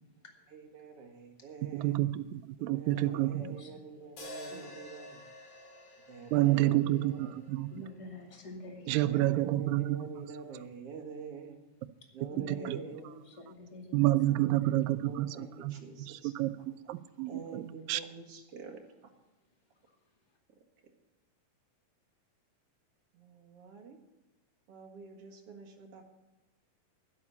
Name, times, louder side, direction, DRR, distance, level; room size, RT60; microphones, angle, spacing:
voice 1, 0.5-2.0 2.6-5.2 6.1-7.4 8.9-11.6 12.1-13.2 14.2-16.5 17.3-18.8 23.1-24.0 24.7-26.0, right 5 dB, 50° right, 2 dB, 2.7 m, -46 dB
voice 2, 1.7-3.4 6.3-7.7 8.9-10.0 12.7-12.8 13.9-15.3 15.6-15.7 16.2-18.0, right 16 dB, 90° right, 14 dB, 2.3 m, -29 dB
voice 3, 2.8-4.7 7.7-9.4 12.3-14.8 17.3-17.4, left 1 dB, 15° left, 1 dB, 1.8 m, -49 dB
sound 1, 4.2-8.4, left 1 dB, 65° left, 4.6 m, -50 dB
12.0 x 11.0 x 7.0 m, 1.1 s
omnidirectional pair, 3.9 m